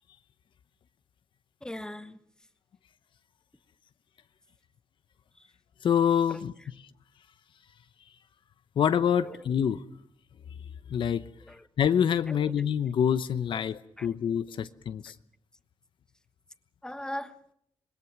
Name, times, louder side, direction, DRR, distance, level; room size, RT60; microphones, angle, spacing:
voice 1, 1.6-2.2 5.3-5.5 6.3-6.7 9.2-9.6 11.4-11.7 12.3-12.5 13.5-13.7 14.0-14.1 14.5-14.6 15.0-15.1 16.8-17.4, left 1 dB, 10° left, 10 dB, 1.3 m, -41 dB
voice 2, 5.8-6.5 8.8-9.8 10.9-11.2 11.8-15.1, left 8 dB, 70° left, 12 dB, 0.8 m, -26 dB
26.0 x 21.0 x 6.0 m, 0.70 s
cardioid pair, 105°, 9 cm